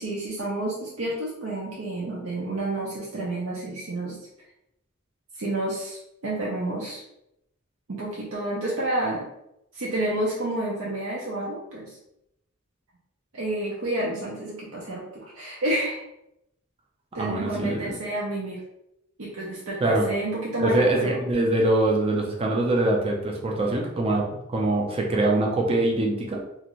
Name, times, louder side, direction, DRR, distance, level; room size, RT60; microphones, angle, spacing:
voice 1, 0.0-4.2 5.4-7.0 7.9-9.3 9.7-12.0 13.3-16.0 17.1-18.6 19.2-21.2, right 1 dB, 80° right, -4 dB, 0.6 m, -30 dB
voice 2, 17.2-17.9 19.8-20.1 20.6-26.4, right 2 dB, 30° right, 0 dB, 0.4 m, -23 dB
2.5 x 2.4 x 3.0 m, 0.83 s
head